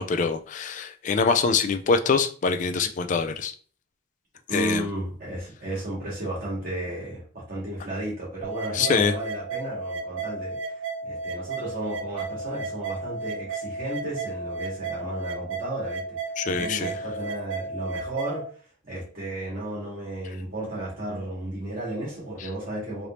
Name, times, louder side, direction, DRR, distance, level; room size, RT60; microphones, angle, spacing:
voice 1, 0.0-3.5 4.5-4.9 8.7-9.1 16.4-17.0, left 5 dB, 40° left, 8 dB, 0.3 m, -24 dB
voice 2, 4.5-16.2 16.4-18.4 18.8-23.1, right 1 dB, 45° right, -6 dB, 1.5 m, -33 dB
sound 1, 8.4-18.4, right 3 dB, 70° right, 0.5 m, -33 dB
3.3 x 2.6 x 2.9 m, 0.42 s
head